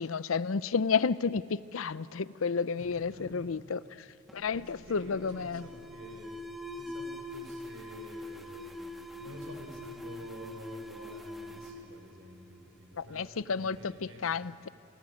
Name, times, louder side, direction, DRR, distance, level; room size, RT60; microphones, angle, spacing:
voice 1, 0.0-4.1 4.3-5.7 13.0-14.7, left 5 dB, 85° left, 17 dB, 0.6 m, -31 dB
voice 2, 2.8-3.5 4.5-6.4 6.8-14.4, right 1 dB, 80° right, 3 dB, 5.4 m, -49 dB
Alarm, 4.3-12.9, left 1 dB, ahead, 1.8 m, -44 dB
28.5 x 23.5 x 8.6 m, 2.8 s
head